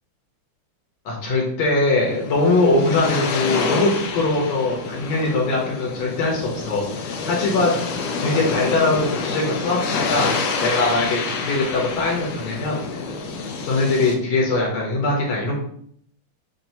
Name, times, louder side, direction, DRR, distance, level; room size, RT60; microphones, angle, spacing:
voice 1, 1.1-7.8 8.2-10.3 10.6-12.8 13.7-15.6, left 2 dB, 65° left, -2 dB, 1.8 m, -21 dB
sound 1, 1.9-14.1, left 4 dB, 80° left, 2.0 m, -28 dB
7.6 x 2.6 x 2.7 m, 0.65 s
omnidirectional pair, 3.6 m